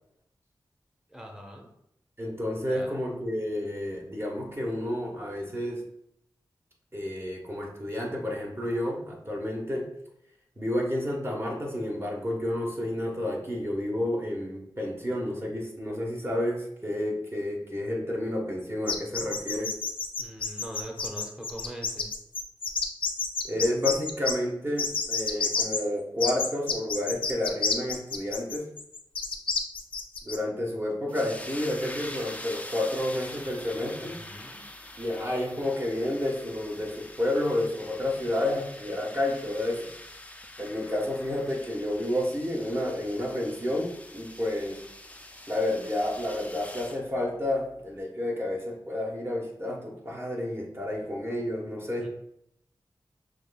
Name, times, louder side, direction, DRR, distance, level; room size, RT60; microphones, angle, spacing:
voice 1, 1.1-1.7 2.6-3.0 20.2-22.1 34.0-34.6 52.0-52.1, equal, 5° right, 1 dB, 1.0 m, -42 dB
voice 2, 2.2-5.8 6.9-9.9 10.6-19.7 23.4-28.7 30.2-34.2 35.0-39.9 40.6-44.8 45.5-52.1, left 1 dB, 30° right, -1 dB, 1.1 m, -30 dB
sound 1, 18.9-24.3 24.8-25.8 26.2-30.4, left 4 dB, 80° left, 0.4 m, -29 dB
sound 2, 31.1-47.0, left 1 dB, 15° left, 0.4 m, -44 dB
6.1 x 2.6 x 2.3 m, 0.75 s
cardioid pair, 50°, 9 cm